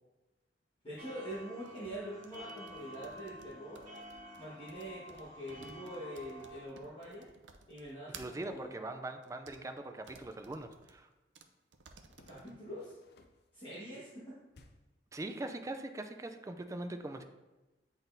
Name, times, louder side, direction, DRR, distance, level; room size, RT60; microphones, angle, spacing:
voice 1, 0.8-3.9 4.4-7.3 7.7-8.7 12.2-13.0 13.5-14.4, right 1 dB, 30° left, -9 dB, 1.4 m, -44 dB
sound 1, 1.0-6.7, left 1 dB, 45° right, 1.7 m, -50 dB
sound 2, 1.3-8.5 9.2-9.6 10.1-11.0 11.3-11.5 11.7-12.5, right 5 dB, 85° right, 0.5 m, -56 dB
voice 2, 8.1-11.1 15.1-17.2, right 2 dB, 15° right, 7 dB, 0.4 m, -42 dB
sound 3, 10.0-10.3 12.1-13.6 14.5-15.0, left 2 dB, 60° left, 0.5 m, -63 dB
8.8 x 4.0 x 2.6 m, 1.1 s
head